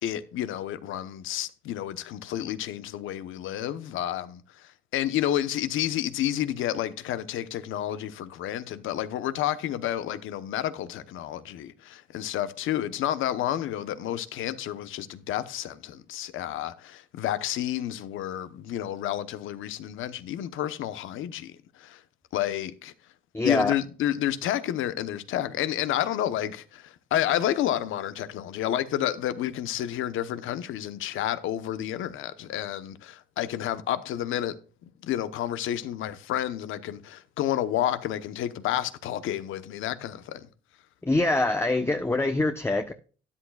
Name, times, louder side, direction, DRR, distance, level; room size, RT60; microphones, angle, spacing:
voice 1, 0.0-22.0 22.3-22.9 23.4-34.5 35.0-40.5, left 12 dB, 85° left, 1.0 m, -30 dB
voice 2, 23.3-23.7 41.0-42.9, left 2 dB, 10° left, 0.9 m, -24 dB
12.5 x 10.5 x 2.3 m
cardioid pair, 90°, 20 cm